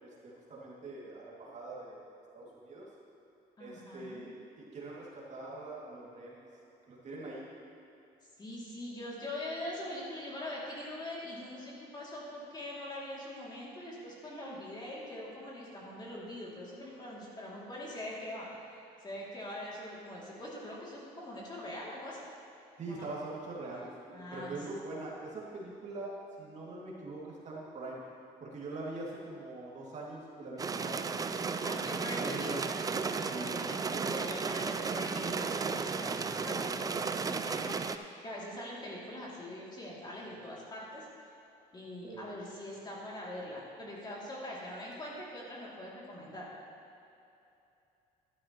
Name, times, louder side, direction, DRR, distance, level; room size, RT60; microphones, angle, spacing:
voice 1, 0.0-2.0 2.3-2.9 3.6-6.5 6.9-7.5 22.8-28.0 28.4-31.1 32.2-32.6 33.3-33.5 42.0-42.3, right 2 dB, 45° right, -5 dB, 2.3 m, -43 dB
voice 2, 3.6-4.3 8.4-22.2 22.9-23.1 24.1-24.6 31.6-32.6 33.0-37.9 38.2-41.1 41.7-46.5, left 1 dB, 25° left, -5 dB, 2.6 m, -43 dB
sound 1, 30.6-38.0, right 5 dB, 20° right, 0.4 m, -34 dB
11.5 x 11.5 x 3.0 m, 2.8 s
cardioid pair, 110°, 17 cm